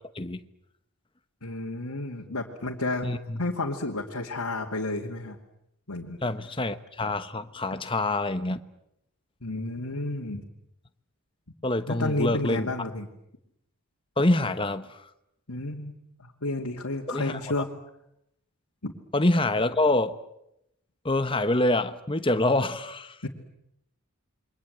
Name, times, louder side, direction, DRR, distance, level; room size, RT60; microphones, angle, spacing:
voice 1, 1.4-3.1 3.4-5.4 5.9-6.2 9.4-10.4 11.9-13.1 15.5-15.9 16.2-17.7 18.8-18.9 23.2-23.3, left 2 dB, 80° left, 2.6 m, -31 dB
voice 2, 3.0-3.4 6.2-8.6 11.6-12.7 14.2-15.0 17.1-17.4 19.1-20.2 21.0-23.3, left 2 dB, 25° left, 1.1 m, -26 dB
28.0 x 23.5 x 8.1 m
head